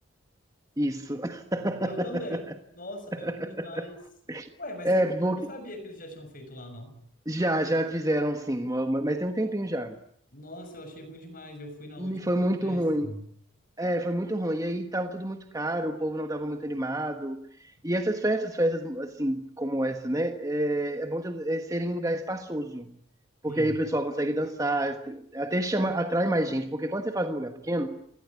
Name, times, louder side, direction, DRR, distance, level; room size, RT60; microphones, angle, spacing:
voice 1, 0.8-2.4 3.2-3.9 4.3-4.5 4.8-5.4 7.3-10.0 12.0-13.1 13.8-22.9 23.4-28.0, right 1 dB, 15° right, 1.4 m, -28 dB
voice 2, 1.8-4.0 4.6-6.9 10.3-13.2 23.5-23.8, left 1 dB, 40° left, 6.4 m, -41 dB
28.5 x 18.0 x 9.6 m
head